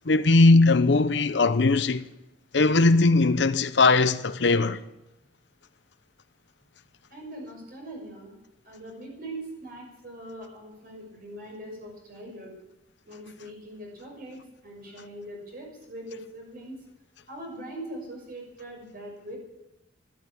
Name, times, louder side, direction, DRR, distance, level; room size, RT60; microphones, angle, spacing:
voice 1, 0.1-2.1 2.5-4.8, left 3 dB, 75° left, 0.8 m, -19 dB
voice 2, 7.1-8.3 8.6-12.5 13.1-16.8 17.3-19.4, right 1 dB, 50° right, 6.1 m, -41 dB
13.5 x 12.0 x 8.7 m
head